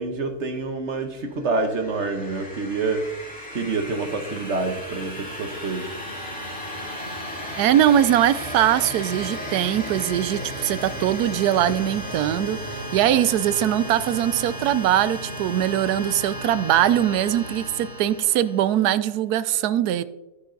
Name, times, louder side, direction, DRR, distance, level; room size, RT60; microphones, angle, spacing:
voice 1, 0.0-6.0, right 3 dB, 50° right, 7 dB, 1.3 m, -27 dB
sound 1, 1.4-19.0, equal, 5° left, 3.7 m, -34 dB
voice 2, 7.6-20.0, right 11 dB, 85° right, 15 dB, 1.1 m, -21 dB
12.0 x 9.8 x 3.9 m, 1.0 s
omnidirectional pair, 1.6 m